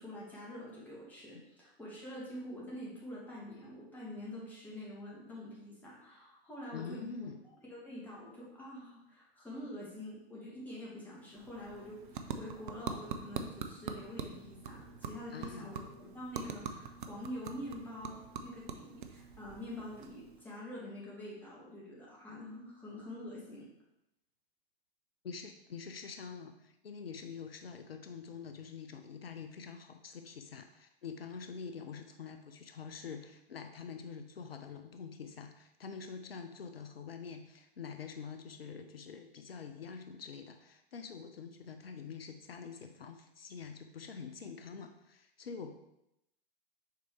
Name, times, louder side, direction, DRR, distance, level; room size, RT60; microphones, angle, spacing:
voice 1, 0.0-7.3 7.7-23.7, left 1 dB, 5° left, -6 dB, 1.9 m, -46 dB
voice 2, 6.7-7.4 15.3-15.8 25.2-45.7, left 6 dB, 75° left, 7 dB, 0.5 m, -46 dB
sound 1, 11.2-20.6, right 6 dB, 55° right, 0.6 m, -44 dB
6.6 x 4.6 x 3.2 m, 0.85 s
figure-of-eight pair, 100°, 30 cm